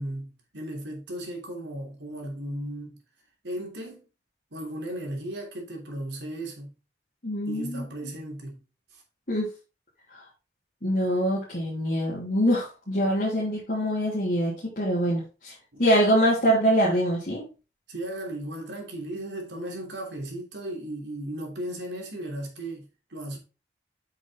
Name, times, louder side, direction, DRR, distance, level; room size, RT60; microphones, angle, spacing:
voice 1, 0.0-3.0 3.4-4.0 4.5-6.7 7.5-8.6 8.9-9.0 17.9-23.4, right 1 dB, 80° right, 3.1 m, -36 dB
voice 2, 7.2-7.8 9.3-9.5 10.1-10.2 10.8-15.5 15.8-17.4, equal, 50° left, 3.2 m, -24 dB
8.1 x 6.2 x 3.6 m
head